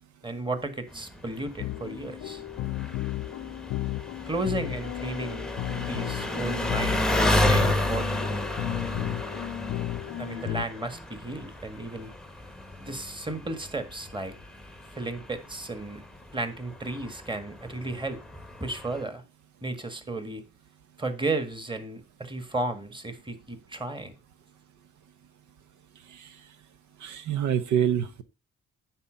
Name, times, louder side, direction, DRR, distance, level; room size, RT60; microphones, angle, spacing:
voice 1, 0.2-2.4 4.2-8.2 10.2-12.1 12.8-14.3 14.9-16.0 16.3-18.2 18.6-19.2 19.6-20.4 21.0-24.1, right 2 dB, 15° right, 1.8 m, -34 dB
Engine, 0.9-19.0, left 1 dB, ahead, 0.9 m, -32 dB
sound 1, 1.6-10.6, left 16 dB, 65° left, 0.5 m, -34 dB
voice 2, 27.0-28.2, right 9 dB, 75° right, 0.9 m, -26 dB
9.8 x 4.3 x 7.7 m
cardioid pair, 90°, 30 cm